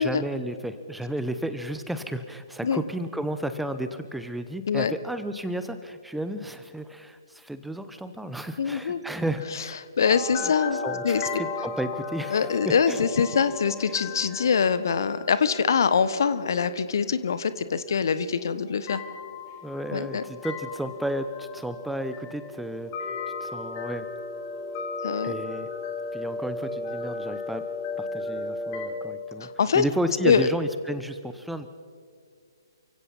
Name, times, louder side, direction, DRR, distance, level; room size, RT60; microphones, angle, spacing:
voice 1, 0.0-9.8 10.4-13.0 13.9-14.0 19.6-23.1 23.4-24.1 25.2-25.7 26.1-27.7 28.0-29.5 29.7-31.7, right 1 dB, ahead, 11 dB, 0.8 m, -33 dB
voice 2, 8.6-9.0 10.0-10.8 11.0-11.2 12.3-19.0 19.9-20.2 25.0-25.3 29.4-30.5, left 6 dB, 55° left, 14 dB, 1.2 m, -24 dB
sound 1, 10.0-28.9, left 4 dB, 30° left, 3.1 m, -36 dB
29.0 x 16.5 x 5.7 m, 2.1 s
figure-of-eight pair, 130°, 2 cm